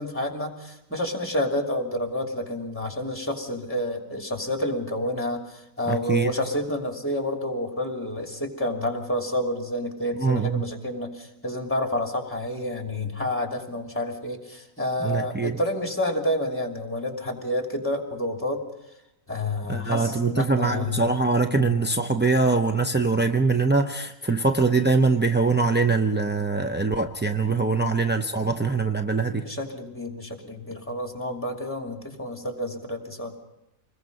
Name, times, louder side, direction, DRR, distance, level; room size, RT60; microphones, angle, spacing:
voice 1, 0.0-18.6 19.3-21.0 21.5-21.8 27.5-27.9 29.3-33.4, left 1 dB, 10° left, 3 dB, 2.8 m, -29 dB
voice 2, 5.9-6.3 10.2-10.7 15.0-15.6 19.7-29.4, right 3 dB, 15° right, 4 dB, 0.3 m, -23 dB
26.5 x 21.0 x 5.4 m, 0.88 s
omnidirectional pair, 1.4 m